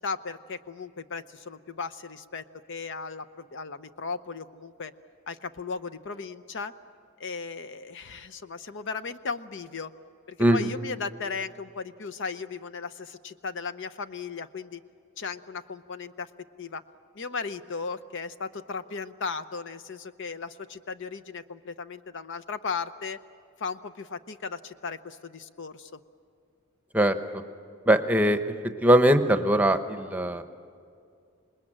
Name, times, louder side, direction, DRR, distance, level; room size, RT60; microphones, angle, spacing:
voice 1, 0.0-4.9 5.3-6.7 7.2-9.9 10.3-14.8 15.2-16.3 16.6-16.8 17.1-23.2 23.6-26.0, left 5 dB, 55° left, 11 dB, 0.7 m, -36 dB
voice 2, 10.4-10.7 26.9-27.2 27.9-28.4 28.8-30.4, right 1 dB, 5° right, 8 dB, 0.9 m, -21 dB
27.0 x 21.0 x 8.9 m, 2.3 s
head